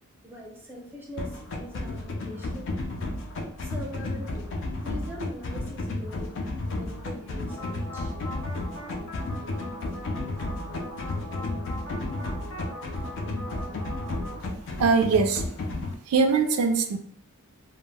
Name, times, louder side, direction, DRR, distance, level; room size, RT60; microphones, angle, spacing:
voice 1, 0.2-2.8 3.6-4.6 4.8-6.4 6.7-8.1, equal, 10° right, -1 dB, 0.4 m, -42 dB
sound 1, 1.2-15.9, left 2 dB, 55° left, 0.4 m, -33 dB
sound 2, 7.5-14.3, equal, 90° left, 0.7 m, -40 dB
voice 2, 14.8-15.4 16.1-17.0, right 4 dB, 75° right, 5 dB, 0.3 m, -22 dB
2.1 x 2.0 x 3.3 m, 0.67 s
head